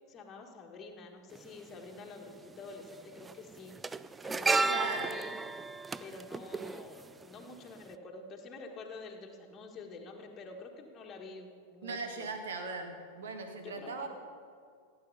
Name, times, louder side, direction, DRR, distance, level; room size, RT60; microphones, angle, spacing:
voice 1, 0.1-3.7 4.2-5.4 6.0-12.3 13.6-14.1, left 3 dB, 25° left, 1 dB, 1.8 m, -48 dB
sound 1, 1.3-1.4 2.6-2.9 3.2-7.5 7.8-7.9, right 3 dB, 10° right, 0.4 m, -33 dB
voice 2, 4.6-5.1 11.8-14.1, right 4 dB, 60° right, 5 dB, 1.7 m, -38 dB
15.0 x 9.0 x 5.6 m, 2.2 s
figure-of-eight pair, 90°, 0 cm